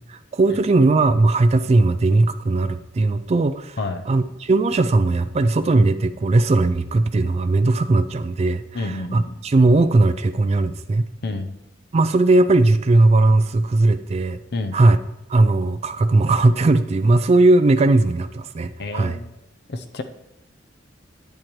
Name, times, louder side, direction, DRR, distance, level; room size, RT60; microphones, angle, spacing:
voice 1, 0.1-3.8 4.1-11.1 11.9-14.4 14.7-15.0 15.3-19.2, right 2 dB, 35° right, 9 dB, 0.3 m, -18 dB
voice 2, 8.7-9.3 11.2-11.5 14.5-14.8 18.8-19.3 19.7-20.0, left 2 dB, 60° left, 8 dB, 0.7 m, -29 dB
10.5 x 8.6 x 3.1 m, 0.88 s
head